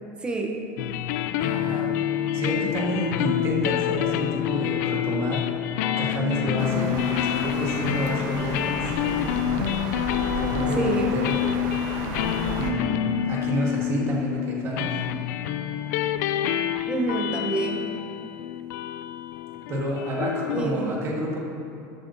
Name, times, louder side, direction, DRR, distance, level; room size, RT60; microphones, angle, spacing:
voice 1, 0.2-0.6 10.7-11.2 16.9-17.9 20.5-21.0, right 3 dB, 10° right, 1 dB, 0.7 m, -28 dB
sound 1, 0.8-20.6, left 11 dB, 90° left, 0.4 m, -27 dB
voice 2, 1.4-2.1 2.3-5.4 6.0-9.7 10.4-11.5 12.5-14.9 19.7-21.4, right 1 dB, 30° right, -2 dB, 1.5 m, -29 dB
sound 2, 6.6-12.7, right 3 dB, 55° right, 1.0 m, -33 dB
13.5 x 8.3 x 2.7 m, 3.0 s
cardioid pair, 170°, 9 cm